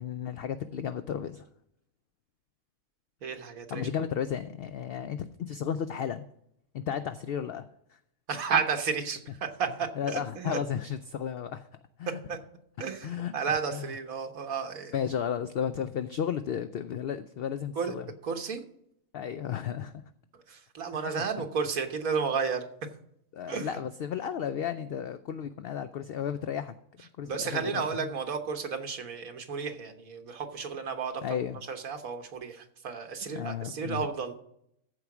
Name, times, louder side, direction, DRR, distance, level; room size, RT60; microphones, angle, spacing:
voice 1, 0.0-1.5 3.7-6.3 6.7-7.6 7.9-8.0 10.0-11.7 12.0-12.2 13.0-13.3 13.7-13.8 14.9-18.1 19.1-20.0 20.9-21.2 23.3-26.7 27.2-28.1 31.2-31.6 33.3-34.0, left 8 dB, 65° left, 11 dB, 0.6 m, -33 dB
voice 2, 3.2-3.9 8.3-10.6 12.1-12.4 12.8-14.9 17.7-17.9 18.2-18.6 20.3-22.7 23.5-23.8 27.2-31.2 31.7-34.3, right 6 dB, 80° right, 6 dB, 1.6 m, -32 dB
14.0 x 4.8 x 6.0 m, 0.74 s
omnidirectional pair, 1.4 m